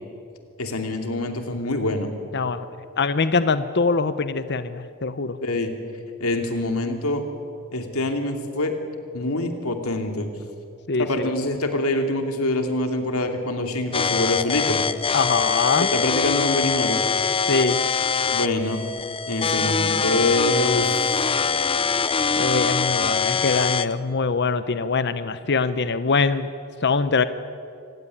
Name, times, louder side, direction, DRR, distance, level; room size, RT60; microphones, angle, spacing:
voice 1, 0.6-2.1 5.4-5.7 6.2-7.2 7.7-8.7 9.1-10.3 11.0-14.8 15.8-17.0 18.3-18.8 19.3-21.2, left 2 dB, 85° left, 5 dB, 2.8 m, -25 dB
voice 2, 2.3-2.7 3.0-5.4 10.9-11.3 15.1-15.9 17.5-17.8 22.4-26.5 26.8-27.2, left 4 dB, 50° left, 12 dB, 0.8 m, -23 dB
sound 1, 13.9-23.9, left 5 dB, 25° left, 0.7 m, -23 dB
26.0 x 16.0 x 9.9 m, 2.5 s
head